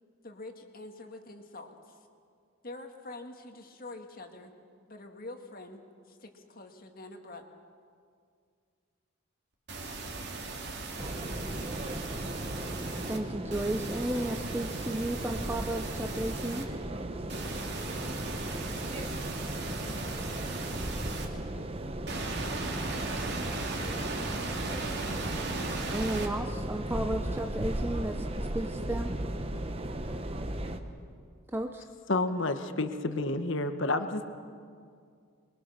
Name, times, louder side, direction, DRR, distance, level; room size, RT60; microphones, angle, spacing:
voice 1, 0.2-2.0 2.6-4.5 4.9-7.4, left 2 dB, 40° left, 4 dB, 1.9 m, -45 dB
sound 1, 9.7-13.2 13.5-16.6 17.3-21.3 22.1-26.3, right 2 dB, 50° right, 2.5 m, -37 dB
sound 2, 11.0-30.8, right 1 dB, 25° right, 1.0 m, -36 dB
voice 2, 13.1-16.7 25.9-28.2 28.5-29.2 31.5-31.8, right 1 dB, 10° right, 4 dB, 0.5 m, -33 dB
voice 3, 32.1-34.2, left 2 dB, 60° left, 8 dB, 1.2 m, -29 dB
23.5 x 22.5 x 6.5 m, 2.2 s
head